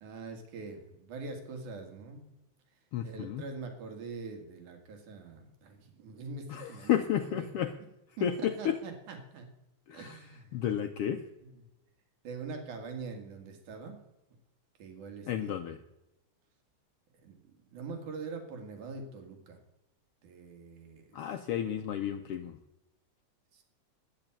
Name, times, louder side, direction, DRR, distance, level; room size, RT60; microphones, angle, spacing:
voice 1, 0.0-2.3 3.0-7.5 8.2-9.5 9.9-10.6 12.2-14.0 14.8-15.6 17.2-17.4 17.7-19.6 20.2-21.3 23.5-23.6, right 4 dB, 85° right, 5 dB, 3.4 m, -43 dB
voice 2, 2.9-3.4 6.5-7.7 8.2-8.8 9.9-11.2 15.3-15.8 21.1-22.6, left 10 dB, 80° left, 7 dB, 1.3 m, -32 dB
10.5 x 9.3 x 8.8 m, 0.90 s
omnidirectional pair, 3.4 m